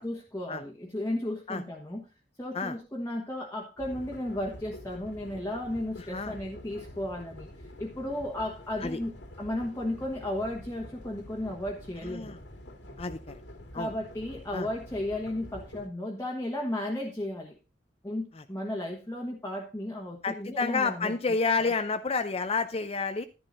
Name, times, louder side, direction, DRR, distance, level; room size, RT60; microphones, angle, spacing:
voice 1, 0.0-2.0 2.4-7.5 7.8-12.4 13.7-17.6 18.0-21.1 21.6-21.7, left 1 dB, 15° left, -3 dB, 1.4 m, -34 dB
sound 1, 3.8-15.9, left 1 dB, 85° left, 2.2 m, -47 dB
voice 2, 6.0-6.3 8.8-9.0 12.0-12.4 13.0-13.3 13.7-13.9 14.5-14.7 18.4-18.5 20.2-23.3, left 4 dB, 35° left, 9 dB, 0.6 m, -30 dB
12.0 x 11.0 x 2.6 m, 0.29 s
head